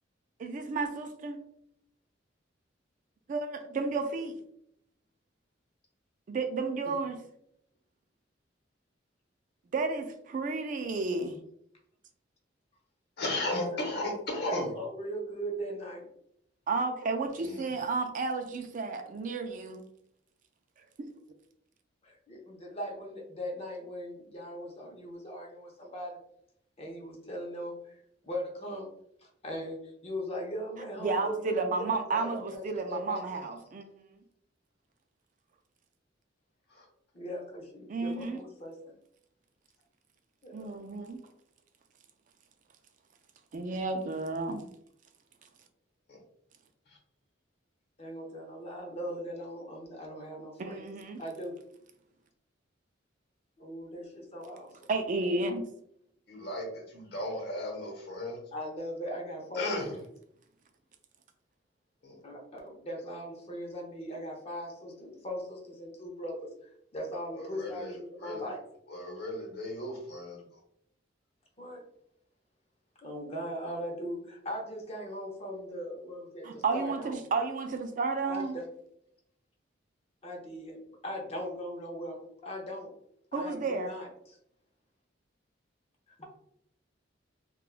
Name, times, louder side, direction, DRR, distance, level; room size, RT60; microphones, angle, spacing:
voice 1, 0.4-1.4 3.3-3.5 3.7-4.4 6.3-7.2 9.7-11.4 16.7-19.8 21.0-21.1 31.0-33.8 37.9-38.4 40.5-41.3 43.5-44.7 50.6-51.2 54.9-55.7 76.4-78.6 83.3-83.9, right 3 dB, 45° right, 6 dB, 0.3 m, -32 dB
voice 2, 13.2-14.7 17.4-17.6 36.7-36.9 46.1-46.2 56.3-58.4 59.5-59.9 62.0-62.2 67.4-68.5 68.9-70.4, left 1 dB, 60° left, 1 dB, 0.9 m, -35 dB
voice 3, 14.4-16.1 22.0-26.2 26.8-28.9 29.2-32.6 32.9-33.4 37.1-38.9 40.4-40.7 48.0-50.9 51.2-51.6 53.6-54.7 58.5-60.0 62.2-66.5 66.9-68.6 71.6-71.8 73.0-77.2 78.3-78.7 80.2-80.8 81.0-82.9 83.3-84.4 86.2-86.3, equal, 35° left, 0 dB, 0.7 m, -39 dB
3.4 x 2.3 x 2.4 m, 0.73 s
head